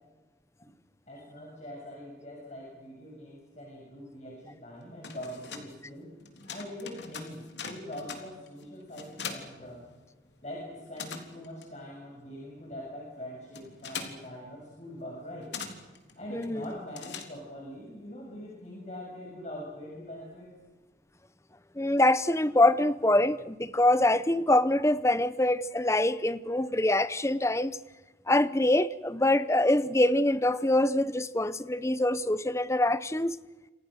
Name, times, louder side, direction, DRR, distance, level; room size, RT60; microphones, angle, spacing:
voice 1, 1.1-6.1 6.5-9.9 10.4-15.5 16.2-20.5, left 1 dB, 40° left, 7.3 m, -43 dB
sound 1, 4.8-10.4 10.6-17.7, left 5 dB, 70° left, 3.5 m, -43 dB
voice 2, 16.3-16.8 21.8-27.8 28.3-33.3, left 1 dB, 15° left, 0.8 m, -24 dB
29.0 x 27.0 x 6.5 m
head